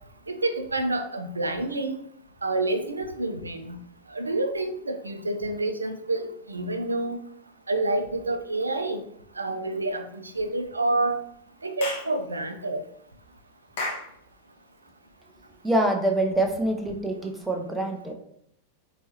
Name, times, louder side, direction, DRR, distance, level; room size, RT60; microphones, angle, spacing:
voice 1, 0.3-2.0 2.4-3.8 4.1-7.2 7.7-9.0 9.4-11.2 11.6-12.8, right 2 dB, 80° right, 7 dB, 0.5 m, -28 dB
Clapping / Chirp tweet, 11.8-12.1 13.8-14.1, left 2 dB, 55° left, 1.1 m, -31 dB
voice 2, 15.6-18.1, right 1 dB, 5° right, 2 dB, 0.6 m, -25 dB
4.4 x 3.1 x 2.8 m, 0.70 s
figure-of-eight pair, 90°, 0 cm